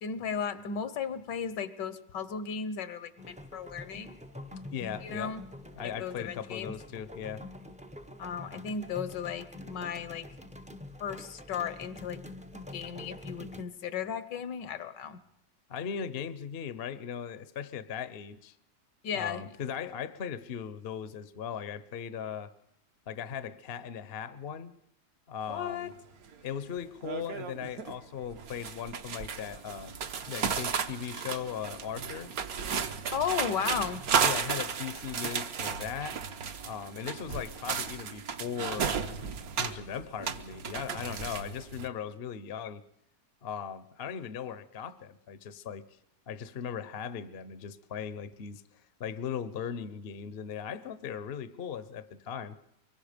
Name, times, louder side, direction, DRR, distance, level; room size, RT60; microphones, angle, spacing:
voice 1, 0.0-4.2 5.0-5.4 5.8-6.7 8.2-10.3 11.0-12.2 12.5-15.2 19.0-19.5 25.5-25.9 33.1-34.0, left 7 dB, 75° left, 1.6 m, -35 dB
sound 1, 3.2-13.6, left 1 dB, 5° right, 0.5 m, -46 dB
voice 2, 4.7-5.3 5.7-7.5 15.7-18.5 19.1-22.5 23.1-24.7 25.3-25.9 26.4-29.9 30.3-32.3 34.2-36.2 36.6-39.2 39.5-42.8 43.4-45.9 46.3-48.6 49.0-52.6, left 8 dB, 45° left, 0.8 m, -38 dB
sound 2, 25.9-26.0 26.3-26.6 27.0-27.9 28.2-41.9, right 6 dB, 55° right, 1.4 m, -34 dB
24.5 x 23.0 x 5.2 m
omnidirectional pair, 2.0 m